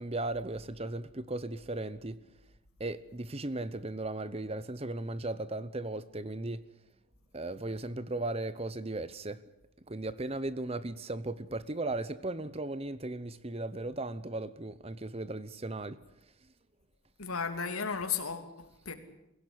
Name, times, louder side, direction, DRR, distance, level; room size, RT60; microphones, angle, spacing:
voice 1, 0.0-2.2 2.8-6.6 7.3-9.4 9.9-16.0, right 2 dB, 25° right, 0.8 m, -36 dB
voice 2, 17.2-18.9, left 6 dB, 85° left, 2.8 m, -34 dB
22.5 x 16.5 x 9.9 m
head